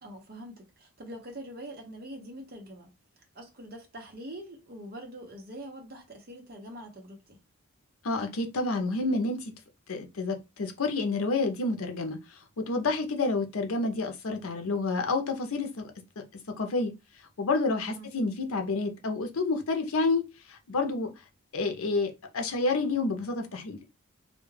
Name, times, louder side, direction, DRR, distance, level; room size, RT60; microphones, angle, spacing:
voice 1, 0.0-2.9 3.3-7.4 17.8-18.1, right 1 dB, 45° right, 0.7 m, -44 dB
voice 2, 8.0-9.5 9.9-16.2 16.6-16.9 17.4-20.2 20.5-21.1 21.5-23.8, left 3 dB, 80° left, 0.6 m, -29 dB
2.2 x 2.1 x 3.2 m
head